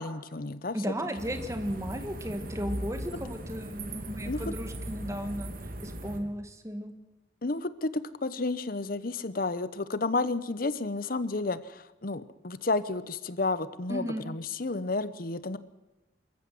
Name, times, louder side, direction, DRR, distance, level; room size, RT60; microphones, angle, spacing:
voice 1, 0.0-0.8 4.3-4.4 7.4-15.6, left 3 dB, 45° left, 15 dB, 0.8 m, -31 dB
voice 2, 0.7-5.5 5.8-6.9 13.9-14.3, equal, 15° right, 7 dB, 1.8 m, -35 dB
sound 1, 1.2-6.2, right 1 dB, 45° right, 2.3 m, -38 dB
24.5 x 14.5 x 7.8 m, 1.0 s
head